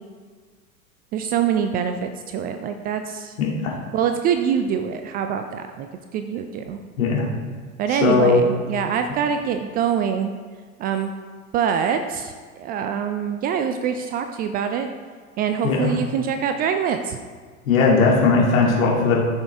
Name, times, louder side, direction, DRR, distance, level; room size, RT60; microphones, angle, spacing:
voice 1, 1.1-3.3 3.9-6.8 7.8-10.3 10.8-11.1 11.5-12.3 12.6-14.9 15.4-17.2, right 7 dB, 25° right, 7 dB, 0.3 m, -24 dB
voice 2, 3.4-3.7 7.0-7.3 7.9-8.4 15.6-15.9 17.7-19.2, left 4 dB, 70° left, -3 dB, 2.5 m, -18 dB
14.5 x 6.2 x 3.5 m, 1.5 s
figure-of-eight pair, 85°, 43 cm